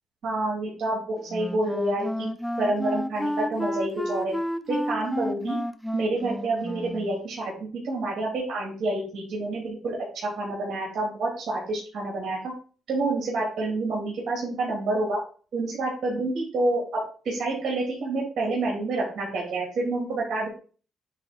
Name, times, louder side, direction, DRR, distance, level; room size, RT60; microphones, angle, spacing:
voice 1, 0.2-2.3 2.6-4.3 4.7-5.6 5.9-7.5 7.8-12.5 12.9-15.2 15.5-20.5, right 2 dB, 60° right, -3 dB, 3.1 m, -28 dB
Wind instrument woodwind instrument, 1.3-7.2, equal, 5° left, 0.6 m, -31 dB
8.8 x 3.5 x 4.4 m, 0.39 s
cardioid pair, 90°, 0 cm